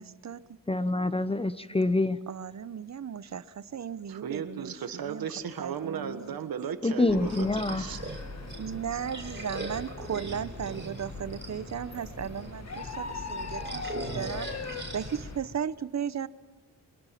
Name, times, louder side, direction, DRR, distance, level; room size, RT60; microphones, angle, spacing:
voice 1, 0.0-0.6 2.3-4.7 5.0-5.3 5.6-6.4 8.6-14.5 14.9-16.3, right 8 dB, 50° right, 0.8 m, -36 dB
voice 2, 0.7-2.2 6.8-7.8, left 2 dB, 15° left, 0.7 m, -26 dB
voice 3, 4.1-8.0, right 7 dB, 85° right, 1.5 m, -35 dB
sound 1, 7.1-15.4, left 4 dB, 50° left, 1.9 m, -40 dB
sound 2, 7.1-15.6, right 2 dB, 30° right, 4.1 m, -41 dB
22.5 x 22.0 x 5.9 m
cardioid pair, 75°, 35 cm